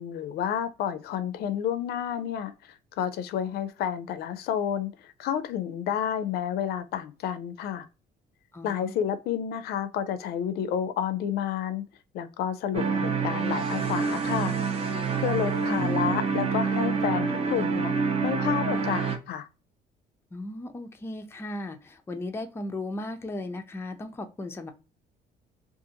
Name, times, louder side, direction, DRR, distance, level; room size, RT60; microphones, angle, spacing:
voice 1, 0.0-7.8 8.6-11.9 12.1-14.6 15.2-17.9 18.2-19.5, left 9 dB, 70° left, 0.4 m, -30 dB
voice 2, 8.5-9.0 15.7-16.1 20.3-24.7, left 1 dB, 15° left, 0.4 m, -36 dB
sound 1, 12.7-19.2, right 5 dB, 35° right, 0.6 m, -27 dB
2.5 x 2.4 x 2.7 m
cardioid pair, 110°, 17 cm